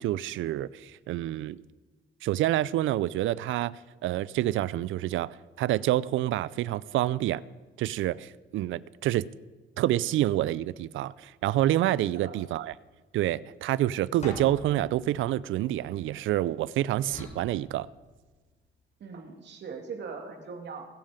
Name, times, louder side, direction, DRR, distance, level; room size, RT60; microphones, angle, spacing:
voice 1, 0.0-1.6 2.2-7.4 7.8-9.3 9.8-12.7 13.1-17.9, right 14 dB, 80° right, 0.5 m, -28 dB
voice 2, 12.0-12.4 19.0-20.9, right 5 dB, 60° right, 2.6 m, -40 dB
sound 1, 14.2-16.4 17.1-18.5, left 1 dB, 35° left, 4.2 m, -44 dB
21.5 x 7.5 x 5.1 m
cardioid pair, 90°, 20 cm